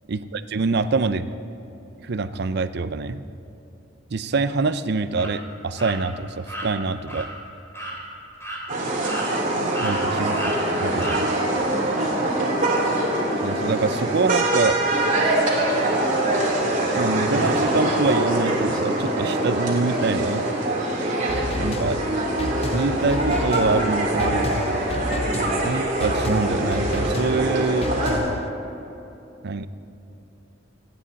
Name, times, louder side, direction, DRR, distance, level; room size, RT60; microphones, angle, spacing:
voice 1, 0.1-1.3 2.0-3.2 4.1-7.3 9.8-10.5 10.8-11.3 13.4-14.8 17.0-20.4 21.6-22.0 22.7-24.6 25.6-27.9 29.4-29.7, right 3 dB, 60° right, 12 dB, 0.6 m, -25 dB
sound 1, 5.2-5.3 5.8-6.0 6.5-6.7 7.1-7.3 7.7-8.0 8.4-8.6 9.0-9.5 9.7-10.0 10.3-10.6 11.0-11.2, right 1 dB, 15° left, 2.9 m, -33 dB
sound 2, 8.7-28.2, right 1 dB, 45° right, 3.3 m, -23 dB
sound 3, 21.3-28.5, left 2 dB, 30° left, 0.4 m, -31 dB
28.0 x 10.0 x 4.1 m, 2.9 s
head